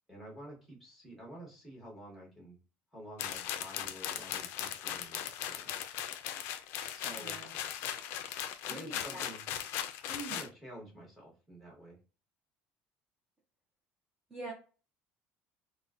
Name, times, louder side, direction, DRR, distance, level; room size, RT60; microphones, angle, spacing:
voice 1, 0.1-2.6 2.9-5.9 6.9-7.4 8.6-9.4 10.2-12.0, equal, ahead, -2 dB, 1.0 m, -50 dB
sound 1, 3.2-10.5, left 10 dB, 55° left, 0.3 m, -38 dB
voice 2, 7.2-7.5 8.7-9.2 10.1-10.4 14.3-14.5, right 2 dB, 20° right, -2 dB, 0.5 m, -43 dB
3.8 x 2.1 x 2.4 m, 0.34 s
cardioid pair, 175°, 5 cm